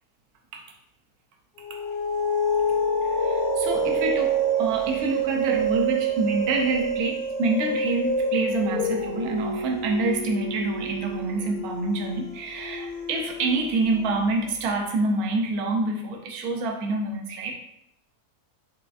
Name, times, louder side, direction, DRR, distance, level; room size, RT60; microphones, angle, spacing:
sound 1, 1.6-14.4, right 2 dB, 55° left, 1.0 m, -27 dB
voice 1, 3.2-17.5, right 3 dB, 75° right, 1 dB, 1.1 m, -27 dB
5.7 x 2.5 x 2.4 m, 0.76 s
omnidirectional pair, 1.7 m